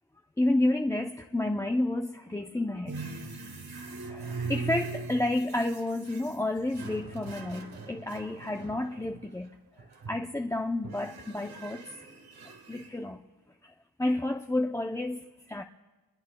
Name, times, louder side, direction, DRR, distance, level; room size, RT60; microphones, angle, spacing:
voice 1, 0.4-3.0 4.1-9.6 10.1-11.9 12.7-13.2 13.6-13.7 14.0-15.6, left 1 dB, 10° left, 0.5 m, -30 dB
sound 1, 2.9-9.3 9.8-10.4 10.8-12.9, right 4 dB, 85° right, 1.6 m, -40 dB
26.5 x 21.5 x 2.2 m
cardioid pair, 70°, 36 cm